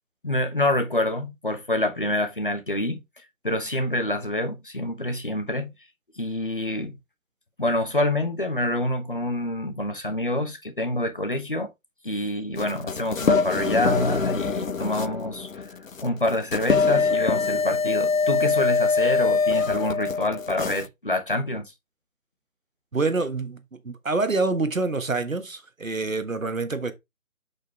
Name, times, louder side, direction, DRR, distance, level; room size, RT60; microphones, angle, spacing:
voice 1, 0.2-3.0 3.4-5.7 6.2-7.0 7.6-11.7 12.0-15.6 16.0-21.7, left 1 dB, 40° left, 1.0 m, -27 dB
sound 1, 12.6-20.9, left 4 dB, 70° left, 0.6 m, -24 dB
voice 2, 22.9-26.9, right 3 dB, 65° right, 1.4 m, -26 dB
6.3 x 5.3 x 3.4 m
figure-of-eight pair, 165°, 42 cm